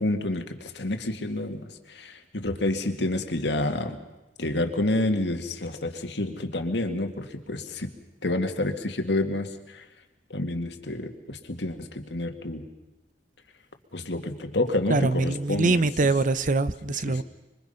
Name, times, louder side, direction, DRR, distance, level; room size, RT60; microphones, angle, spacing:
voice 1, 0.0-4.0 4.4-7.9 8.2-9.5 9.7-9.8 10.3-12.6 13.9-15.9 16.9-17.2, left 2 dB, 75° left, 5 dB, 2.1 m, -29 dB
voice 2, 14.9-17.2, right 3 dB, 50° right, 15 dB, 0.7 m, -23 dB
26.0 x 24.0 x 5.8 m, 1.0 s
head